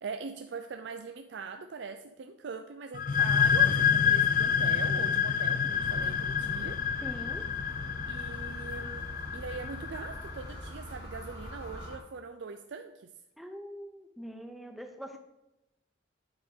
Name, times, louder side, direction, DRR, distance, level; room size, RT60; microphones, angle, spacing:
voice 1, 0.0-6.8 8.1-9.1 9.3-13.1, right 4 dB, 70° right, 7 dB, 0.4 m, -42 dB
sound 1, 2.9-10.4, left 7 dB, 45° left, 0.4 m, -28 dB
sound 2, 5.7-12.0, equal, 75° left, 2.7 m, -43 dB
voice 2, 7.0-7.5 13.4-15.2, equal, ahead, 4 dB, 0.8 m, -43 dB
8.6 x 3.7 x 6.3 m, 0.92 s
head